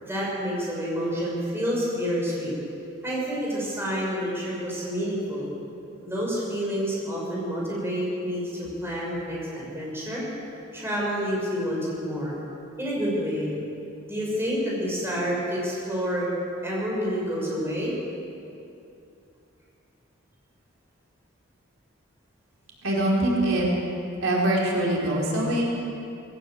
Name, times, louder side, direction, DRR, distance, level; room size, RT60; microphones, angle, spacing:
voice 1, 0.0-2.5 3.0-5.5 6.0-10.2 10.7-12.3 12.8-13.5 14.1-16.3 16.6-17.9, equal, 10° right, -5 dB, 6.3 m, -28 dB
voice 2, 22.8-23.7 24.2-25.6, right 1 dB, 85° right, -3 dB, 4.7 m, -23 dB
20.0 x 17.5 x 8.0 m, 2.7 s
head